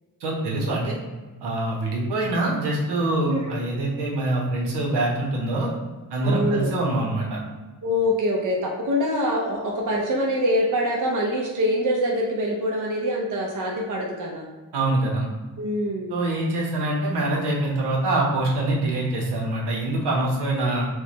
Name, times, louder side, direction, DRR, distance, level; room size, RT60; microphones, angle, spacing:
voice 1, 0.2-1.0 1.4-5.7 6.1-7.4 14.7-15.3 16.1-20.9, right 2 dB, 85° right, -3 dB, 1.0 m, -24 dB
voice 2, 6.2-6.7 7.8-14.4 15.6-16.2, equal, 50° right, -1 dB, 0.7 m, -24 dB
4.6 x 2.2 x 2.9 m, 1.2 s
cardioid pair, 95°, 39 cm